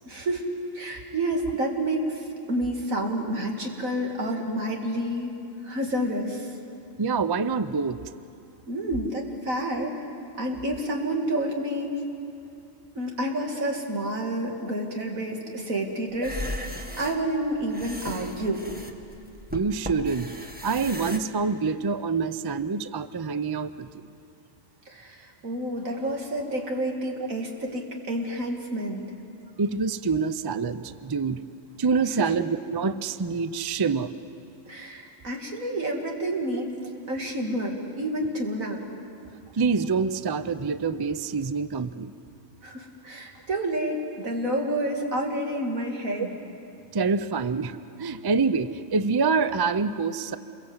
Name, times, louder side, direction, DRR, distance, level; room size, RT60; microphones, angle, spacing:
voice 1, 0.0-0.5 0.7-5.3 5.6-6.6 8.7-10.0 10.4-11.9 12.9-18.6 24.9-29.0 32.2-32.3 34.7-36.7 37.1-38.8 42.6-46.3, right 1 dB, 90° right, 1 dB, 2.9 m, -29 dB
voice 2, 7.0-8.0 19.5-24.1 29.6-31.4 31.8-34.1 39.5-42.1 46.9-50.4, right 5 dB, 40° right, 13 dB, 0.3 m, -26 dB
sound 1, 16.1-21.2, equal, 5° right, 1.6 m, -36 dB
28.0 x 22.5 x 8.0 m, 2.6 s
omnidirectional pair, 1.4 m